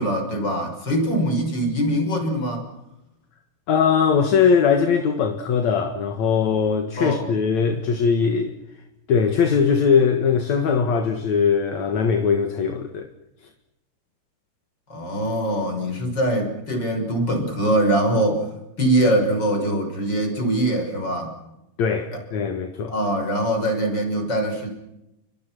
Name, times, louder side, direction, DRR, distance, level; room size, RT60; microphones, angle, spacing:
voice 1, 0.0-2.7 7.0-7.3 14.9-18.5 18.8-21.4 22.1-22.2 22.9-24.7, right 1 dB, 25° left, 6.3 m, -23 dB
voice 2, 3.7-8.5 9.1-13.1 21.8-22.9, left 6 dB, 55° left, 2.5 m, -20 dB
29.5 x 24.0 x 6.2 m
omnidirectional pair, 4.8 m